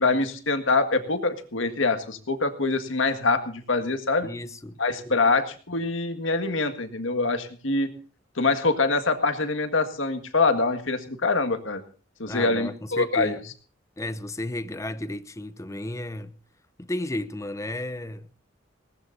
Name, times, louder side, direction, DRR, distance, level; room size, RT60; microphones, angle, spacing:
voice 1, 0.0-4.3 4.8-7.9 8.4-11.8 12.2-13.4, left 3 dB, 70° left, 1.8 m, -24 dB
voice 2, 4.2-4.8 5.1-5.2 12.2-13.4 14.0-16.4 16.8-18.3, left 1 dB, 15° left, 0.7 m, -33 dB
20.0 x 18.5 x 2.7 m
head